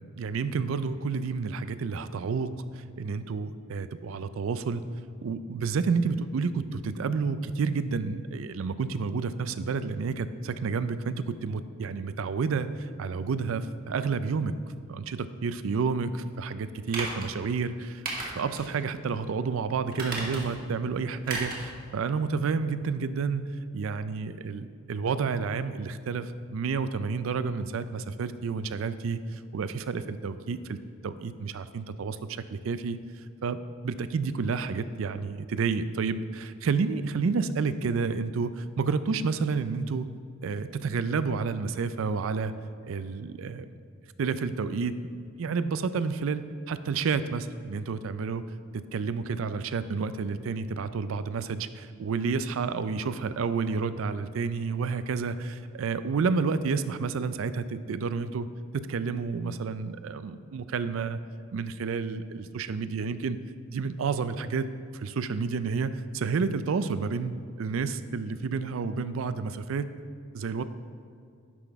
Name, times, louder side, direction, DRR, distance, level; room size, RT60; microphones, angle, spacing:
voice 1, 0.0-2.5 2.7-4.8 5.2-14.5 14.9-18.0 18.3-23.5 23.7-30.8 31.0-33.0 33.4-33.6 33.8-40.1 40.4-42.5 42.8-43.7 44.2-45.0 45.4-48.4 48.7-58.5 58.7-61.2 61.5-63.4 63.7-64.7 64.9-67.3 67.6-69.9 70.3-70.6, right 5 dB, 75° right, 13 dB, 0.4 m, -30 dB
sound 1, 16.9-17.3 18.0-18.7 19.1-19.2 19.9-20.6 21.2-21.7 22.0-22.1, right 2 dB, 45° right, 1.7 m, -34 dB
10.5 x 6.0 x 3.5 m, 2.4 s
head